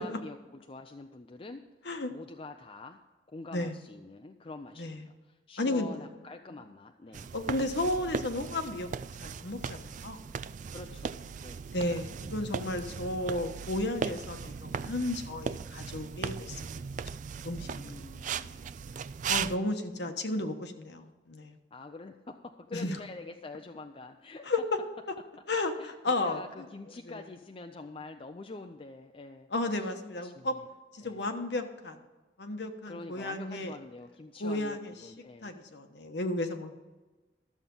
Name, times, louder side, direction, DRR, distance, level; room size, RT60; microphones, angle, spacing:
voice 1, 0.0-1.6 2.1-3.0 3.3-7.3 10.7-11.1 11.4-11.6 17.8-19.0 20.4-20.5 21.7-24.5 25.6-29.5 29.8-29.9 30.2-30.7 31.0-31.3 32.8-35.5, left 3 dB, 30° left, 5 dB, 0.5 m, -46 dB
voice 2, 4.8-5.1 5.6-6.1 7.3-8.9 9.2-10.2 11.7-16.6 17.4-17.9 19.3-21.6 22.7-23.0 24.5-24.6 25.5-26.4 27.1-27.2 29.5-30.5 30.9-32.0 32.4-33.7 34.4-34.9 35.4-36.7, left 2 dB, 70° left, 6 dB, 1.2 m, -33 dB
sound 1, 7.1-19.6, right 6 dB, 45° right, 0.3 m, -38 dB
13.0 x 7.3 x 5.4 m, 1.2 s
head